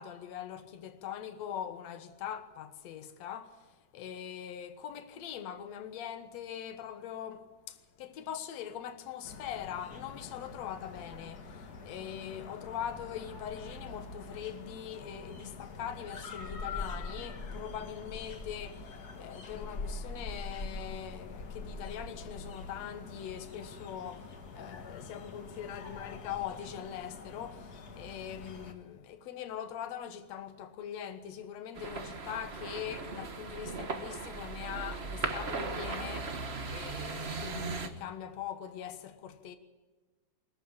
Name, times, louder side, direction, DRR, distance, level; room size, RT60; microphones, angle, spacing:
voice 1, 0.0-3.6 3.9-36.3 36.7-39.6, left 9 dB, 65° left, 2.4 m, -42 dB
sound 1, 9.2-28.7, left 3 dB, 40° left, 1.7 m, -44 dB
sound 2, 31.7-37.9, right 4 dB, 75° right, 0.5 m, -38 dB
23.0 x 14.5 x 8.8 m
omnidirectional pair, 3.6 m